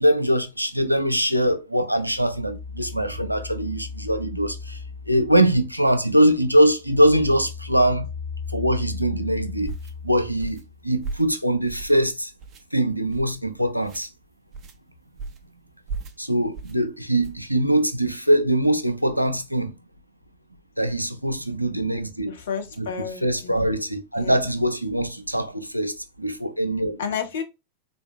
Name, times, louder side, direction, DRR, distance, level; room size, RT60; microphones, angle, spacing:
voice 1, 0.0-4.8 5.1-8.1 8.5-9.7 10.0-10.6 10.8-12.3 12.7-14.1 16.2-19.7 20.8-22.3 22.8-22.9 23.2-27.0, right 1 dB, 90° right, 0.4 m, -22 dB
sound 1, 2.1-6.0 6.4-10.9, left 5 dB, 25° left, 0.5 m, -36 dB
sound 2, 9.6-9.9 10.4-10.7 11.0-11.3 11.7-12.1 12.4-12.6 13.1-13.4 13.8-14.1 14.5-14.8 15.2-15.5 15.9-16.2 16.5-16.8 17.2-17.5, right 4 dB, 30° right, 0.5 m, -36 dB
voice 2, 22.3-23.7 24.1-24.4 27.0-27.4, left 7 dB, 65° left, 0.7 m, -31 dB
3.5 x 2.5 x 2.4 m
figure-of-eight pair, 90°, 0 cm